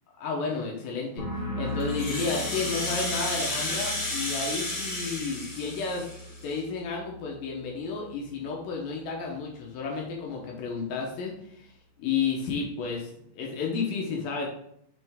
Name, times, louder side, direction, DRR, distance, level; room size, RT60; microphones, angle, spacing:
voice 1, 0.2-6.1 6.4-11.7 12.0-14.5, left 5 dB, 90° left, -1 dB, 1.9 m, -32 dB
sound 1, 1.2-8.6 8.9-9.4, left 1 dB, 65° left, 1.1 m, -39 dB
Rattle (instrument), 1.8-6.6, left 2 dB, 40° left, 1.9 m, -32 dB
9.1 x 3.1 x 3.5 m, 0.71 s
omnidirectional pair, 5.2 m